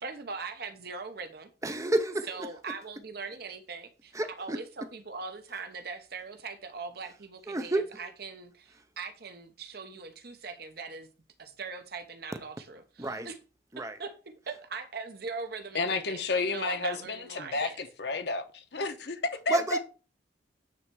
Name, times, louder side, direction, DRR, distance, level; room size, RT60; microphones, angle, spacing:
voice 1, 0.0-1.5 2.3-11.1 11.4-13.4 13.8-14.1 14.5-17.8, right 4 dB, 55° right, 0.9 m, -41 dB
voice 2, 1.6-2.3 4.1-4.6 7.5-7.9 13.0-13.3 13.7-14.0 19.5-19.8, right 1 dB, 15° right, 0.6 m, -29 dB
voice 3, 15.7-19.8, left 3 dB, 65° left, 1.0 m, -31 dB
9.5 x 3.3 x 4.7 m
head